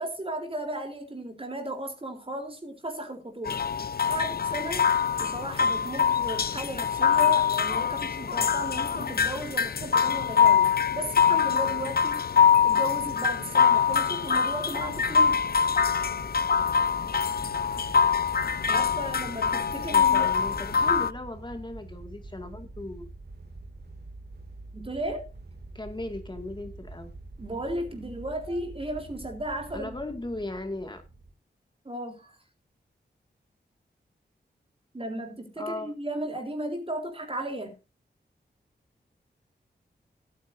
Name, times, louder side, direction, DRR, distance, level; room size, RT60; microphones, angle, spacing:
voice 1, 0.0-3.6 4.1-4.9 5.2-12.4 12.6-15.4 18.7-20.3 24.7-25.3 27.4-30.0 31.9-32.4 34.9-37.8, right 1 dB, 30° right, 3.7 m, -35 dB
sound 1, 3.5-21.1, left 7 dB, 60° left, 0.7 m, -24 dB
sound 2, 14.8-31.3, right 2 dB, 65° right, 2.7 m, -45 dB
voice 2, 19.9-23.1 25.7-27.1 29.7-31.0 35.6-35.9, left 2 dB, 25° left, 2.2 m, -37 dB
18.5 x 9.3 x 2.7 m
wide cardioid pair, 75°, 18 cm